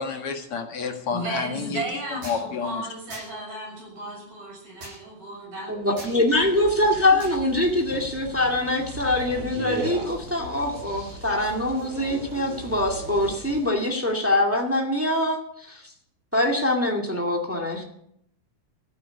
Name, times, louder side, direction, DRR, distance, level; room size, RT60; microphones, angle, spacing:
voice 1, 0.0-1.8 2.2-2.8, left 5 dB, 50° left, 4 dB, 2.0 m, -29 dB
voice 2, 1.1-6.4, right 2 dB, 70° right, -2 dB, 8.8 m, -35 dB
sound 1, 2.2-2.4 3.1-3.3 4.8-5.0 6.0-6.1 7.2-7.4, right 1 dB, 50° right, 9.0 m, -40 dB
voice 3, 5.7-15.4 15.7-15.8 16.3-17.8, left 1 dB, 10° right, 1 dB, 0.8 m, -23 dB
sound 2, 6.3-13.7, right 1 dB, 30° right, 6.9 m, -37 dB
15.0 x 9.3 x 9.5 m, 0.70 s
omnidirectional pair, 4.5 m